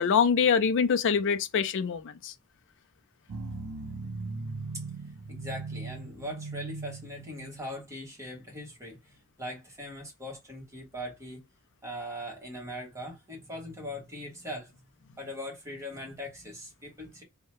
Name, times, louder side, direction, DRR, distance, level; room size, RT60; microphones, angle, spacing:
voice 1, 0.0-2.3, left 6 dB, 60° left, 0.4 m, -24 dB
sound 1, 3.3-7.9, right 3 dB, 85° right, 0.6 m, -39 dB
voice 2, 5.3-11.5 11.8-14.7 15.0-17.2, equal, 15° right, 1.2 m, -40 dB
2.7 x 2.2 x 3.0 m
head